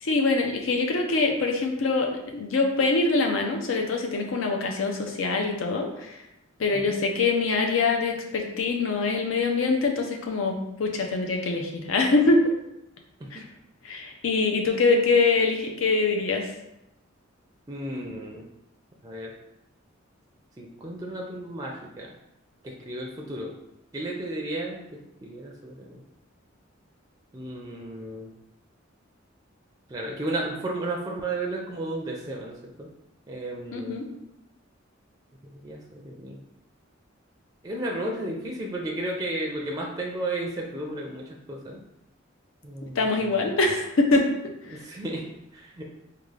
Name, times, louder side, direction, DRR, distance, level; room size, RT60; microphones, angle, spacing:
voice 1, 0.0-6.1 6.6-12.4 13.3-13.4 13.8-16.5 33.7-34.1 43.0-44.3 44.7-44.8, left 3 dB, 80° left, 2 dB, 0.6 m, -24 dB
voice 2, 17.7-18.4 19.0-19.3 20.6-22.1 22.6-23.5 23.9-24.8 25.2-25.9 27.3-28.3 29.9-32.9 33.3-34.0 35.4-36.4 37.6-41.2 41.5-41.8 42.6-43.4 44.7-45.2 45.5-45.9, right 1 dB, 20° right, -1 dB, 0.4 m, -33 dB
3.6 x 2.3 x 3.2 m, 0.85 s
head